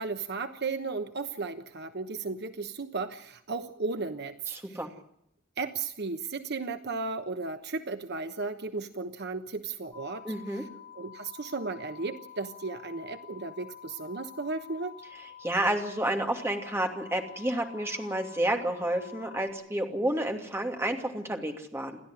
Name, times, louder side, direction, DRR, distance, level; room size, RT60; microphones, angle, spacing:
voice 1, 0.0-4.4 4.7-4.8 5.6-10.6 10.9-14.9, right 4 dB, 55° right, 9 dB, 1.1 m, -35 dB
voice 2, 4.5-4.9 10.2-10.6 15.4-22.0, right 1 dB, 15° right, 3 dB, 2.7 m, -30 dB
sound 1, 9.9-19.5, left 9 dB, 20° left, 3.1 m, -49 dB
29.0 x 12.0 x 9.7 m, 0.73 s
head